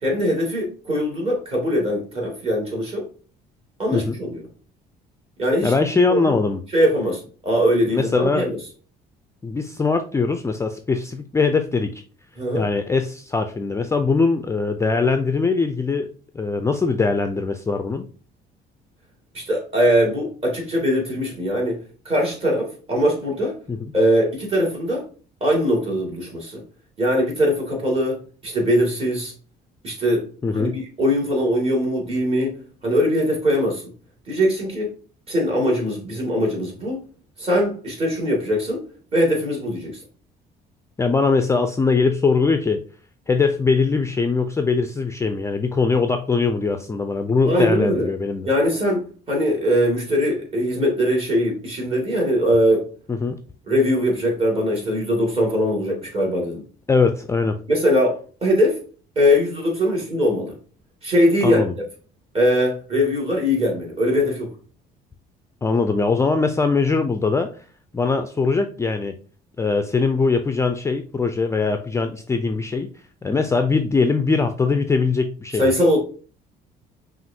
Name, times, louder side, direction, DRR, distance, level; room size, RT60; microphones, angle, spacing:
voice 1, 0.0-3.1 3.8-4.4 5.4-5.7 6.1-6.4 6.7-8.6 12.4-12.6 19.3-21.8 22.1-23.5 23.9-25.1 25.4-26.6 27.0-29.3 29.8-32.6 32.8-33.8 34.3-34.9 35.3-37.0 37.4-38.8 39.1-40.0 47.5-48.1 48.4-52.9 53.7-56.6 57.7-58.8 59.2-60.5 61.0-61.6 62.3-64.5 75.6-76.0, equal, 35° right, 2.1 m, -21 dB
voice 2, 5.6-6.6 7.9-8.5 9.4-12.0 12.5-18.1 23.7-23.9 30.4-30.8 41.0-42.8 43.3-48.5 53.1-53.4 56.9-57.6 61.4-61.7 65.6-67.5 67.9-69.2 69.6-72.9 73.2-75.6, left 4 dB, 15° left, 0.3 m, -21 dB
5.9 x 2.5 x 2.7 m
cardioid pair, 110°, 17 cm